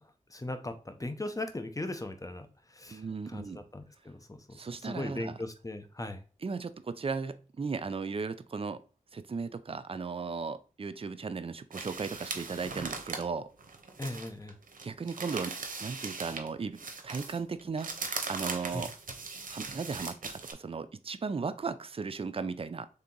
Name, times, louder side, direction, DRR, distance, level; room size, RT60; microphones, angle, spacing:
voice 1, 0.3-6.2 14.0-14.5 18.7-18.8, left 2 dB, 25° left, 8 dB, 0.7 m, -39 dB
voice 2, 2.9-3.6 4.5-5.3 6.4-8.8 9.1-13.5 14.8-17.9 18.3-18.9 19.5-22.9, right 4 dB, 40° right, 12 dB, 0.4 m, -36 dB
sound 1, 11.7-16.5 16.8-20.5, right 4 dB, 80° right, 0.7 m, -39 dB
3.4 x 2.8 x 3.8 m, 0.37 s
cardioid pair, 45°, 14 cm